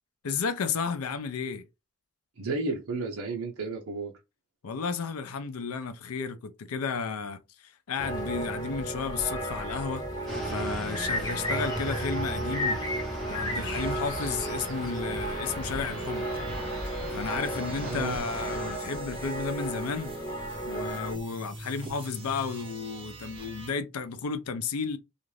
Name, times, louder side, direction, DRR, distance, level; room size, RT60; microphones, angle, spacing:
voice 1, 0.2-1.7 4.6-10.0 10.4-12.8 13.3-16.3 17.1-20.1 20.6-25.0, left 5 dB, 90° left, 0.5 m, -33 dB
voice 2, 2.4-4.1 17.6-18.2, right 3 dB, 80° right, 0.7 m, -33 dB
sound 1, 8.0-21.1, right 1 dB, 20° left, 0.7 m, -34 dB
sound 2, 10.3-18.8, equal, ahead, 1.0 m, -38 dB
sound 3, 13.4-23.7, right 2 dB, 25° right, 0.5 m, -44 dB
2.5 x 2.4 x 3.1 m
head